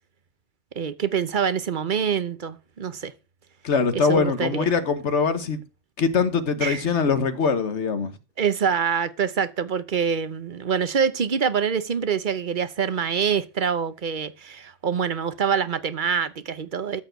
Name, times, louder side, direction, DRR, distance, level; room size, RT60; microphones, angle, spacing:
voice 1, 0.8-3.1 3.9-4.7 6.6-6.8 8.4-17.0, right 7 dB, 45° right, 0.9 m, -25 dB
voice 2, 3.6-5.6 6.0-8.2, left 5 dB, 65° left, 1.4 m, -22 dB
13.5 x 4.6 x 7.9 m
omnidirectional pair, 1.3 m